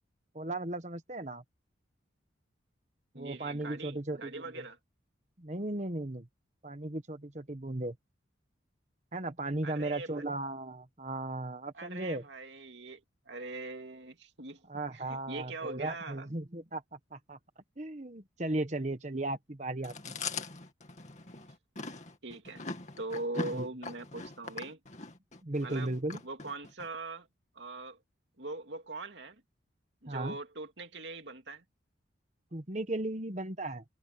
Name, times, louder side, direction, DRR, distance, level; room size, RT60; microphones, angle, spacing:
voice 1, 0.3-1.4 3.1-4.6 5.4-6.3 6.6-7.9 9.1-12.2 14.7-17.4 17.8-19.9 20.2-20.3 23.5-23.7 25.4-26.2 30.1-30.4 32.5-33.8, right 2 dB, 35° right, 1.3 m, -36 dB
voice 2, 3.1-4.8 9.6-10.2 11.7-16.3 22.2-22.6 23.0-24.8 25.6-25.9 26.2-27.3 27.5-28.0 28.4-29.4 30.0-31.6, right 2 dB, 65° right, 2.6 m, -42 dB
Chewing mastication, 19.8-26.9, left 3 dB, 35° left, 2.4 m, -41 dB
head